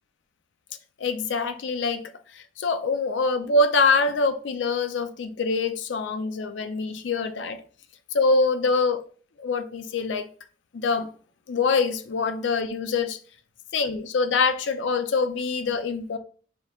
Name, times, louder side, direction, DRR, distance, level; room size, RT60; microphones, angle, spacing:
voice 1, 1.0-2.0 2.3-7.6 8.1-9.0 9.4-10.3 10.7-11.1 11.5-13.2 13.7-16.2, left 3 dB, 70° left, 0.4 m, -24 dB
5.0 x 3.0 x 2.3 m
head